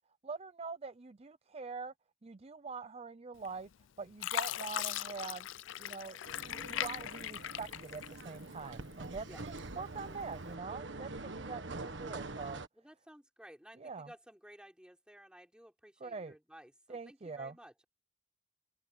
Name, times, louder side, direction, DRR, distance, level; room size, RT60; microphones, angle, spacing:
voice 1, 0.2-1.9 2.2-3.7 4.0-5.5 5.8-9.3 9.8-12.6 13.8-14.1 16.0-16.4 16.9-17.6, right 4 dB, 30° right, 0.6 m, -44 dB
Fill (with liquid), 3.4-3.8 4.2-8.6 9.0-9.8 10.4-10.5, left 11 dB, 75° left, 0.4 m, -39 dB
sound 1, 6.2-12.7, right 2 dB, 65° right, 1.5 m, -45 dB
voice 2, 12.7-17.8, equal, 5° right, 6.1 m, -56 dB
head